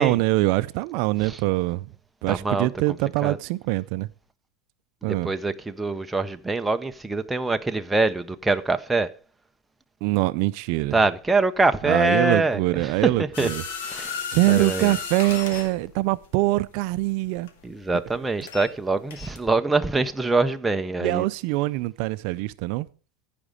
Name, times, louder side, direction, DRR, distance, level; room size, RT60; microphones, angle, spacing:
voice 1, 0.0-1.9 2.2-4.1 5.0-5.3 10.0-10.9 11.8-13.6 14.3-17.5 21.0-22.9, right 19 dB, 55° right, 0.4 m, -23 dB
voice 2, 2.3-2.7 3.2-3.4 5.0-9.1 10.9-13.5 13.8-14.2 14.5-14.9 17.6-21.2, right 3 dB, 5° right, 0.5 m, -24 dB
sound 1, 13.3-18.8 19.1-19.4, left 6 dB, 80° left, 2.0 m, -34 dB
15.0 x 5.1 x 5.1 m
supercardioid pair, 150°, 0 cm